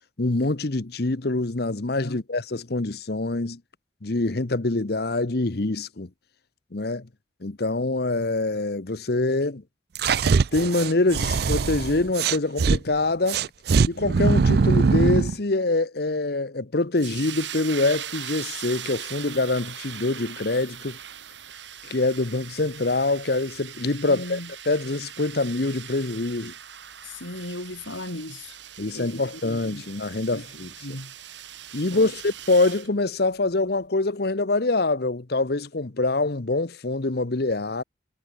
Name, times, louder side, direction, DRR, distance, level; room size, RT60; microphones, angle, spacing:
voice 1, 0.2-3.6 4.0-6.1 6.7-7.1 7.4-9.6 10.5-13.4 13.9-21.0 21.8-24.4 24.6-26.5 28.8-31.0 31.7-37.8, left 2 dB, 55° left, 1.0 m, -25 dB
sound 1, 10.0-12.8 13.3-15.4, right 4 dB, 55° right, 0.4 m, -21 dB
sound 2, 17.0-32.9, right 10 dB, 70° right, 2.6 m, -40 dB
voice 2, 24.1-24.5 27.0-28.6 28.9-29.8 30.3-31.1 31.9-32.1, left 1 dB, 80° left, 4.6 m, -37 dB
head